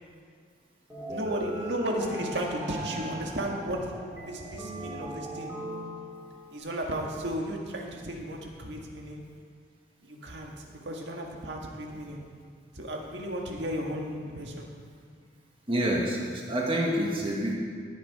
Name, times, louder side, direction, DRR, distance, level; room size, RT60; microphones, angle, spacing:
sound 1, 0.9-6.6, right 1 dB, 10° right, 2.4 m, -39 dB
voice 1, 1.1-3.9 4.2-5.5 6.2-9.2 10.0-12.2 12.7-14.7, right 1 dB, 75° right, 0 dB, 1.7 m, -34 dB
voice 2, 15.7-17.5, right 1 dB, 30° right, -2 dB, 1.6 m, -27 dB
19.0 x 6.9 x 4.8 m, 2.1 s
head